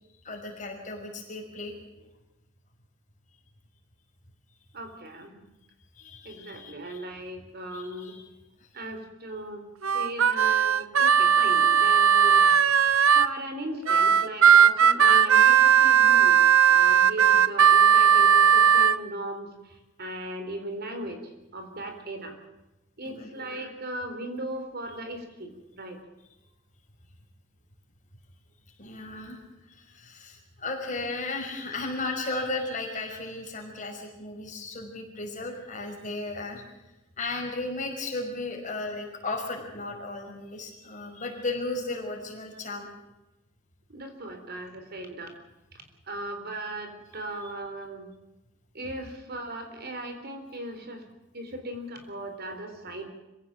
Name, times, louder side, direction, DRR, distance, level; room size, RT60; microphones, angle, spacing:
voice 1, 0.2-1.7 6.0-7.1 7.7-8.3 8.6-8.7 23.0-23.3 28.8-36.6 37.2-42.9 47.4-47.5, left 2 dB, 40° left, 1 dB, 5.6 m, -35 dB
voice 2, 4.7-5.4 6.2-8.2 8.7-9.6 9.9-12.5 13.1-16.4 16.7-21.2 21.5-22.4 23.0-26.0 43.9-45.3 46.1-48.1 48.7-51.0 51.3-53.0, right 1 dB, 50° right, 6 dB, 3.7 m, -37 dB
Harmonica, 9.8-13.3 13.9-19.0, right 8 dB, 75° right, 0.8 m, -18 dB
25.5 x 16.5 x 7.5 m, 0.99 s
head